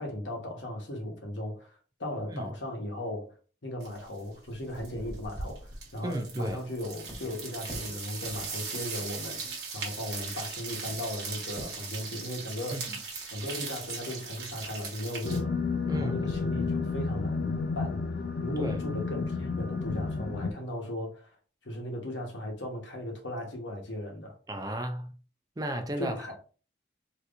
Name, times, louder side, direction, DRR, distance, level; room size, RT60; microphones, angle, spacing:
voice 1, 0.0-3.3 3.6-9.5 9.7-13.0 13.3-15.5 15.9-18.0 18.4-21.4 21.6-24.3 26.0-26.4, left 1 dB, 90° left, 1.1 m, -37 dB
sound 1, 3.8-4.2 4.5-15.4, right 4 dB, 65° right, 1.1 m, -39 dB
sound 2, 5.9-6.0 6.3-6.8 7.1-7.4 7.7-9.1 10.1-10.2 10.3-10.4 10.9-11.8, equal, 10° left, 1.2 m, -46 dB
voice 2, 6.0-6.6 12.7-12.8 15.9-16.2 18.6-18.8 24.5-25.1 25.6-26.2, right 1 dB, 20° right, 0.4 m, -33 dB
sound 3, 15.2-20.5, left 4 dB, 55° left, 0.4 m, -31 dB
3.4 x 2.9 x 2.5 m
head